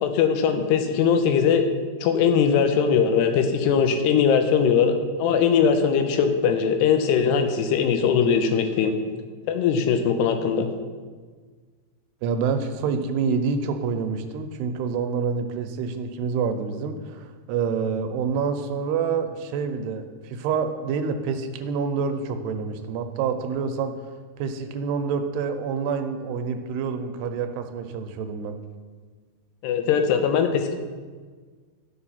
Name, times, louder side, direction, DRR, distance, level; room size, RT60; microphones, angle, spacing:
voice 1, 0.0-1.7 2.0-9.0 9.5-10.7 29.6-30.7, left 7 dB, 90° left, 7 dB, 3.0 m, -20 dB
voice 2, 12.2-23.9 24.4-28.6, right 5 dB, 85° right, 7 dB, 2.8 m, -27 dB
11.0 x 6.9 x 5.7 m, 1.5 s
omnidirectional pair, 4.7 m